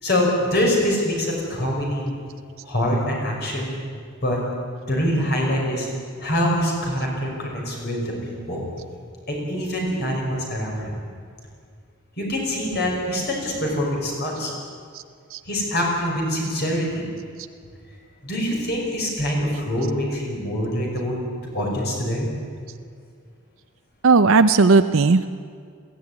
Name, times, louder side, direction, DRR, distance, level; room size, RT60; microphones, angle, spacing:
voice 1, 0.0-2.1 2.6-3.7 4.2-4.4 4.8-5.9 6.2-8.7 9.3-10.9 12.2-14.5 15.5-17.0 18.2-21.2 21.5-22.3, equal, 50° left, -1 dB, 5.6 m, -24 dB
voice 2, 24.0-25.2, right 4 dB, 65° right, 9 dB, 0.6 m, -16 dB
21.0 x 15.0 x 9.6 m, 2.2 s
head